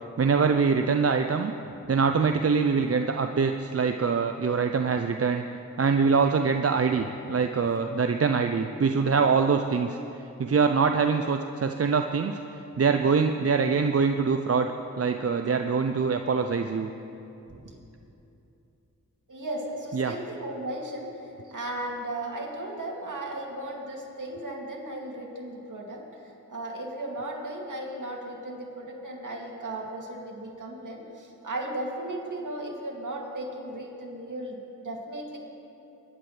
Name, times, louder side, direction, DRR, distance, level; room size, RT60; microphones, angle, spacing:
voice 1, 0.2-1.5 1.9-5.4 5.8-10.0 10.4-12.4 12.8-14.7 15.0-16.9 19.9-20.1, right 5 dB, 40° right, 6 dB, 0.6 m, -24 dB
voice 2, 19.3-26.0 26.5-35.4, right 1 dB, 60° right, -1 dB, 2.7 m, -36 dB
22.0 x 10.5 x 3.4 m, 2.9 s
cardioid pair, 45°, 35 cm